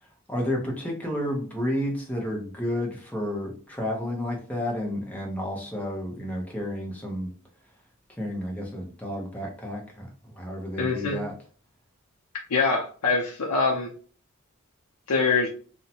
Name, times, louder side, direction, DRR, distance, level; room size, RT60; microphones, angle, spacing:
voice 1, 0.3-7.3 8.2-11.3, left 1 dB, 5° left, -1 dB, 0.6 m, -31 dB
voice 2, 10.8-11.2 12.5-13.9 15.1-15.5, left 4 dB, 90° left, -1 dB, 0.5 m, -24 dB
2.6 x 2.1 x 2.8 m, 0.42 s
head